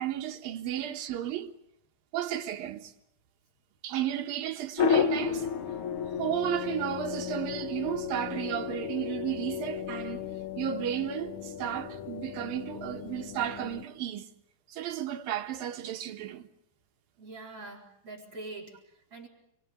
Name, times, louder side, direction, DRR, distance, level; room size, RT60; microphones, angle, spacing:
voice 1, 0.0-1.5 2.1-2.9 3.8-5.5 6.2-10.3 10.6-14.3 14.7-16.5, right 11 dB, 70° right, 3.2 m, -33 dB
sound 1, 4.8-13.9, left 7 dB, 70° left, 1.3 m, -33 dB
voice 2, 17.2-19.3, right 2 dB, 40° right, 4.7 m, -44 dB
28.0 x 24.0 x 7.0 m
omnidirectional pair, 4.3 m